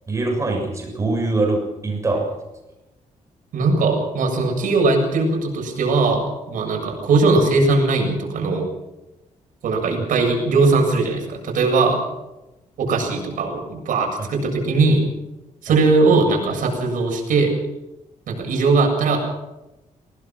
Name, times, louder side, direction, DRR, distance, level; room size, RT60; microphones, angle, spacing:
voice 1, 0.1-2.4 14.2-14.3, right 2 dB, 20° right, 1 dB, 6.9 m, -23 dB
voice 2, 3.5-8.7 9.6-12.0 12.8-15.0 15.6-17.6 18.3-19.2, right 3 dB, 85° right, 1 dB, 7.5 m, -19 dB
25.0 x 19.0 x 6.2 m, 0.97 s
wide cardioid pair, 170°, 13 cm